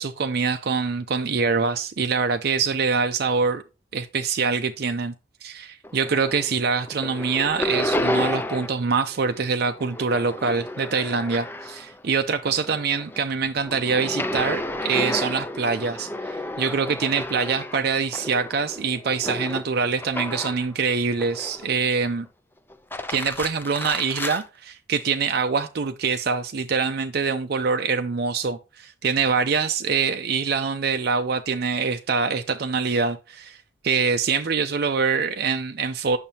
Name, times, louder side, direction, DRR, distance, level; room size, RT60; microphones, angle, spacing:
voice 1, 0.0-3.6 3.9-5.1 5.4-22.3 23.1-33.6 33.8-36.2, right 5 dB, 55° right, 0.5 m, -24 dB
sound 1, 5.8-6.6 6.8-8.9 9.1-12.0 12.4-20.7 21.2-21.9 22.7-24.4, left 1 dB, 10° left, 0.5 m, -31 dB
8.8 x 6.5 x 2.8 m
head